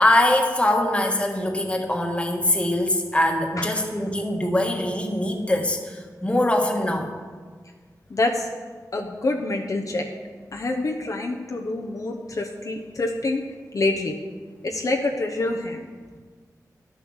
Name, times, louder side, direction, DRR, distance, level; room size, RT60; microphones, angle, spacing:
voice 1, 0.0-7.1, left 1 dB, 20° left, 2 dB, 1.5 m, -22 dB
voice 2, 3.6-3.9 8.1-8.5 8.9-10.1 10.5-13.4 13.7-14.1 14.6-15.8, left 2 dB, 60° left, 1 dB, 0.9 m, -26 dB
11.0 x 7.3 x 6.4 m, 1.5 s
wide cardioid pair, 100°, 7 cm